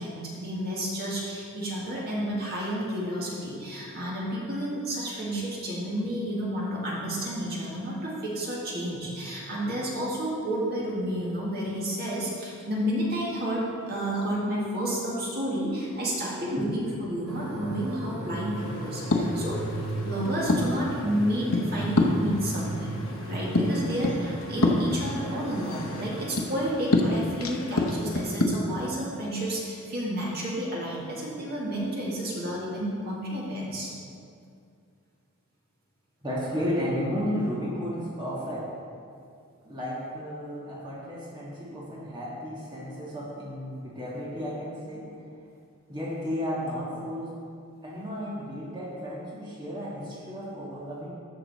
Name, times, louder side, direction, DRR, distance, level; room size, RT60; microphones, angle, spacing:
voice 1, 0.0-13.6 13.9-19.6 20.0-22.9 23.2-33.9, equal, 45° right, -5 dB, 2.0 m, -31 dB
sound 1, 17.3-26.3, right 1 dB, 80° right, 1.7 m, -36 dB
sound 2, 18.6-28.4, left 2 dB, 65° left, 1.0 m, -28 dB
voice 2, 36.2-38.6 39.6-45.1 45.9-47.3 47.8-51.1, equal, 20° right, -7 dB, 1.7 m, -33 dB
13.5 x 5.9 x 4.2 m, 2.3 s
head